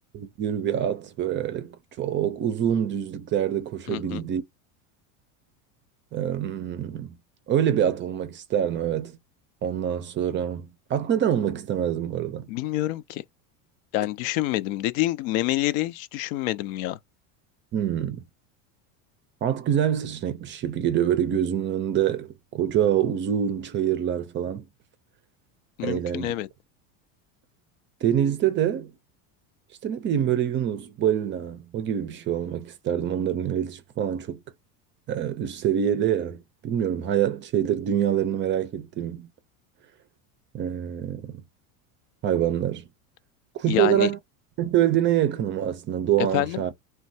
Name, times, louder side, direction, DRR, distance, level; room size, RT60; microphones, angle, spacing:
voice 1, 0.1-4.4 6.1-7.2 7.5-9.2 9.6-12.5 17.7-18.2 19.4-24.7 25.8-26.3 28.0-28.9 29.8-34.4 35.1-39.3 40.5-41.4 42.2-42.9 43.5-44.2 44.6-46.7, right 10 dB, 30° right, 0.4 m, -25 dB
voice 2, 3.9-4.2 12.5-13.2 13.9-17.0 25.8-26.5 43.7-44.1 46.3-46.6, left 15 dB, 75° left, 0.6 m, -27 dB
3.1 x 2.2 x 2.6 m
supercardioid pair, 135°, 41 cm